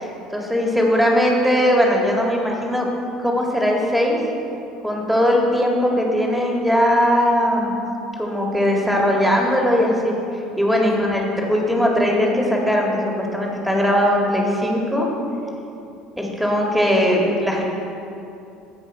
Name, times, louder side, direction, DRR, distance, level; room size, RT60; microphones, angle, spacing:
voice 1, 0.3-2.9 3.2-4.2 4.8-7.7 8.2-10.1 10.6-15.1 16.2-17.6, equal, ahead, -1 dB, 1.9 m, -19 dB
15.0 x 5.2 x 4.4 m, 2.8 s
figure-of-eight pair, 60°, 3 cm